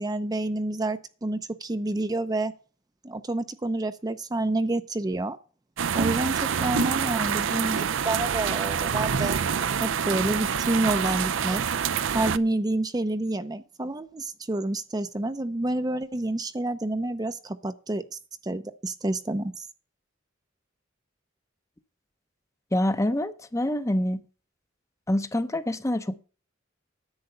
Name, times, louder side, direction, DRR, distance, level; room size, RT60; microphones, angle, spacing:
voice 1, 0.0-2.5 3.0-5.4 5.9-9.4 9.8-11.6 12.1-19.7, right 2 dB, 20° right, 0.6 m, -29 dB
sound 1, 5.8-12.4, right 7 dB, 65° right, 0.5 m, -26 dB
voice 2, 22.7-24.2 25.1-26.2, left 1 dB, 15° left, 0.7 m, -26 dB
10.5 x 8.2 x 5.5 m
head